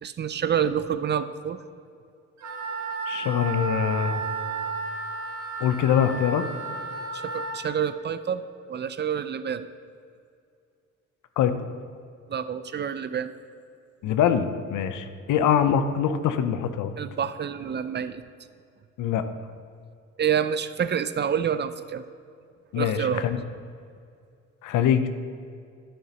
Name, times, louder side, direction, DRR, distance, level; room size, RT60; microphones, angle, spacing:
voice 1, 0.0-1.6 7.1-9.7 12.3-13.3 17.0-18.2 20.2-22.0 22.7-23.3, right 8 dB, 35° right, 12 dB, 0.4 m, -28 dB
Wind instrument woodwind instrument, 2.4-7.6, right 4 dB, 65° right, 1.3 m, -33 dB
voice 2, 3.1-4.3 5.6-6.4 11.4-11.7 14.0-16.9 19.0-19.2 22.7-23.4 24.6-25.1, left 8 dB, 80° left, 10 dB, 0.6 m, -23 dB
10.5 x 9.9 x 2.9 m, 2.4 s
cardioid pair, 90°, 30 cm